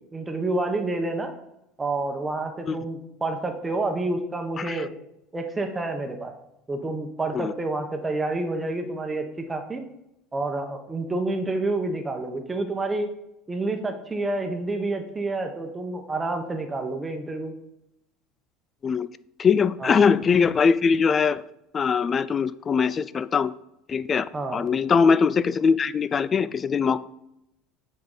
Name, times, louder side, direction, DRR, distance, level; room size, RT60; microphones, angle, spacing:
voice 1, 0.1-1.3 1.8-4.9 5.3-6.3 6.7-9.8 10.3-13.1 13.5-17.5 19.8-20.1 24.3-24.7, right 2 dB, 15° right, 5 dB, 1.1 m, -28 dB
voice 2, 19.4-21.4 21.7-23.5 23.9-27.0, left 6 dB, 30° left, 17 dB, 0.4 m, -22 dB
8.6 x 5.2 x 3.9 m, 0.85 s
supercardioid pair, 95°, 0 cm